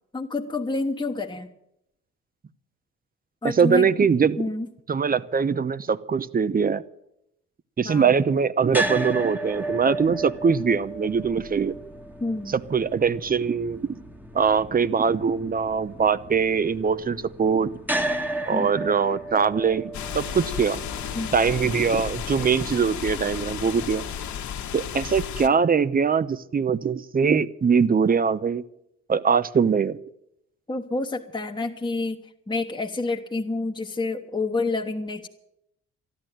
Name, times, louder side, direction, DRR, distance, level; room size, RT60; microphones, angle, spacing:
voice 1, 0.1-1.5 3.4-3.9 4.4-4.7 7.8-8.1 12.2-12.6 18.5-18.7 21.1-21.3 30.7-32.2 32.5-35.3, left 3 dB, 15° left, 0 dB, 1.3 m, -28 dB
voice 2, 3.4-4.4 4.9-6.8 7.8-11.7 12.5-13.8 14.3-17.7 18.5-20.8 21.3-24.0 24.7-28.6 29.1-30.0, right 6 dB, 30° right, 17 dB, 0.8 m, -22 dB
sound 1, 8.7-24.8, right 1 dB, 5° right, 1.5 m, -35 dB
sound 2, 19.9-25.5, left 8 dB, 70° left, 1.5 m, -33 dB
13.5 x 12.0 x 9.1 m, 0.79 s
cardioid pair, 90°, 30 cm